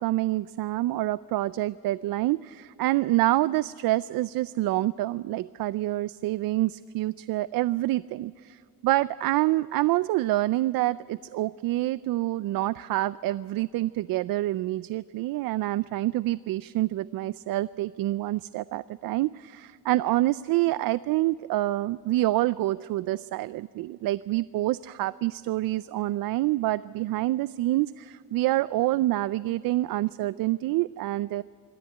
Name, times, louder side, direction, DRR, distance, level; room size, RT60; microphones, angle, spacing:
voice 1, 0.0-31.4, right 16 dB, 75° right, 17 dB, 0.5 m, -27 dB
25.5 x 13.5 x 9.5 m, 2.3 s
cardioid pair, 140°, 35 cm